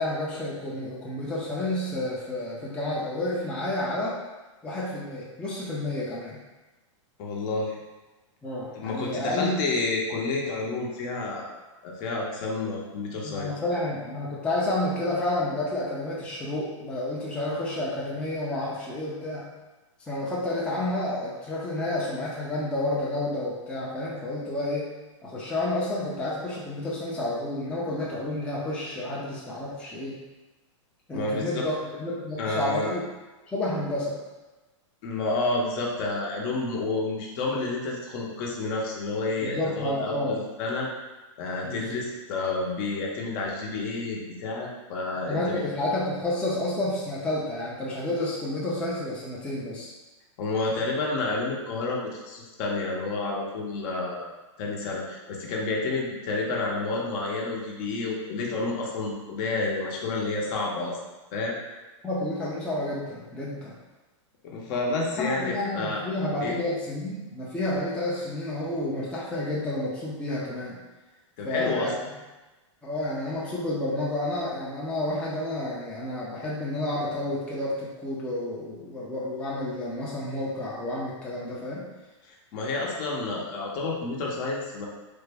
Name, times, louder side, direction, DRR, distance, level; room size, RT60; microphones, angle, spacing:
voice 1, 0.0-4.2 4.6-6.4 8.4-9.7 13.2-19.4 20.1-24.9 25.2-30.1 31.1-33.0 33.5-34.2 39.4-40.4 41.6-42.0 45.3-49.9 62.0-63.8 65.2-70.8 71.4-72.0 72.8-81.9, left 1 dB, 5° left, -7 dB, 0.5 m, -30 dB
voice 2, 7.2-7.8 8.7-11.5 11.8-13.5 31.1-31.5 32.4-32.9 35.0-40.9 41.4-45.6 50.4-54.3 54.6-61.0 61.3-61.5 64.4-66.0 66.4-66.6 71.4-71.9 82.3-84.9, left 3 dB, 45° left, -2 dB, 0.8 m, -30 dB
3.4 x 2.1 x 3.4 m, 1.2 s
hypercardioid pair, 130°, 16 cm